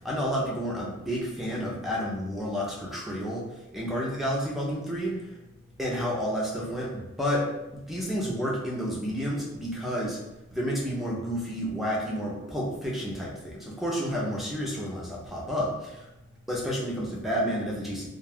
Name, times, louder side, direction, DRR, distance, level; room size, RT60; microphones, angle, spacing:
voice 1, 0.0-3.4 3.7-5.2 5.8-7.5 7.9-10.2 10.5-15.7 16.5-18.1, equal, ahead, -4 dB, 0.5 m, -30 dB
2.4 x 2.3 x 3.4 m, 0.96 s
head